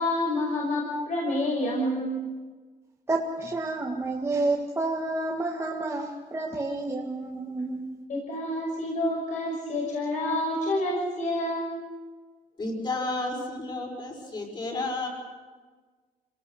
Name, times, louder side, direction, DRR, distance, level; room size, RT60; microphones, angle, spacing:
voice 1, 0.0-2.3 8.1-11.8, left 1 dB, 55° left, -2 dB, 5.9 m, -28 dB
voice 2, 3.1-7.9, right 2 dB, 20° right, -3 dB, 1.8 m, -29 dB
voice 3, 12.6-15.1, left 2 dB, 30° left, 1 dB, 5.6 m, -31 dB
28.0 x 18.5 x 6.5 m, 1.4 s
wide cardioid pair, 170°, 15 cm